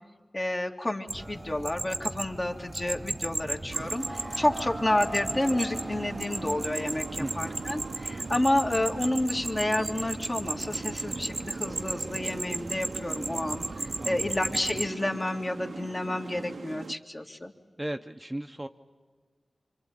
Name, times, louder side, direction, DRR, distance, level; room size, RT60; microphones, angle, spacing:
voice 1, 0.3-17.5, left 1 dB, 35° left, 3 dB, 2.3 m, -30 dB
sound 1, 1.1-14.9, right 2 dB, 45° right, 0.8 m, -36 dB
sound 2, 1.2-9.2, equal, 15° left, 2.2 m, -45 dB
sound 3, 3.7-16.9, right 4 dB, 80° right, 0.8 m, -41 dB
voice 2, 7.2-7.6 14.0-14.3 17.8-18.7, right 1 dB, 20° right, 6 dB, 0.9 m, -36 dB
26.0 x 25.5 x 8.8 m, 1.5 s
cardioid pair, 45°, 0 cm